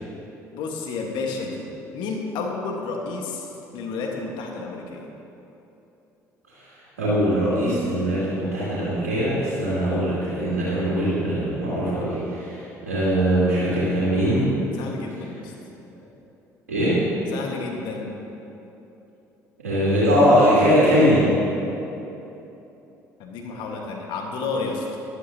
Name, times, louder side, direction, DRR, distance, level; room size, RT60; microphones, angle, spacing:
voice 1, 0.5-1.7 1.9-3.5 3.7-5.1 14.8-15.5 17.3-18.1 23.2-24.9, left 4 dB, 65° left, 1 dB, 1.5 m, -31 dB
voice 2, 7.0-14.5 16.7-17.0 19.6-21.2, equal, 85° right, -11 dB, 2.7 m, -21 dB
13.0 x 12.0 x 2.8 m, 3.0 s
hypercardioid pair, 55°, 8 cm